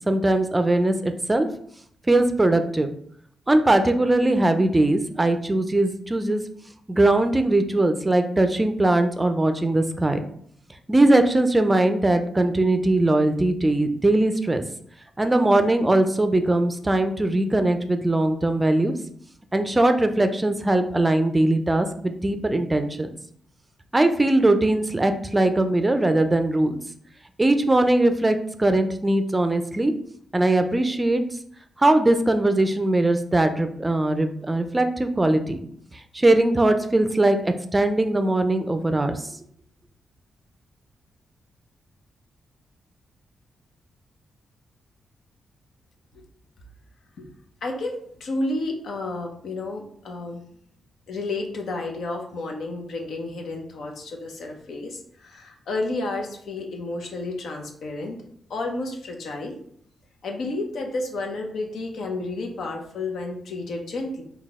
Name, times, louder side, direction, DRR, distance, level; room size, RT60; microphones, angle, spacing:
voice 1, 0.1-1.5 2.1-2.9 3.5-6.4 6.9-10.2 10.9-14.6 15.2-18.9 19.5-23.1 23.9-26.8 27.4-29.9 30.3-31.2 31.8-35.6 36.1-39.2, right 2 dB, 20° right, 8 dB, 0.4 m, -20 dB
voice 2, 47.6-50.4 51.1-58.2 58.5-59.6 60.2-64.2, left 2 dB, 75° left, 2 dB, 0.7 m, -31 dB
4.0 x 2.3 x 3.5 m, 0.65 s
cardioid pair, 65°, 0 cm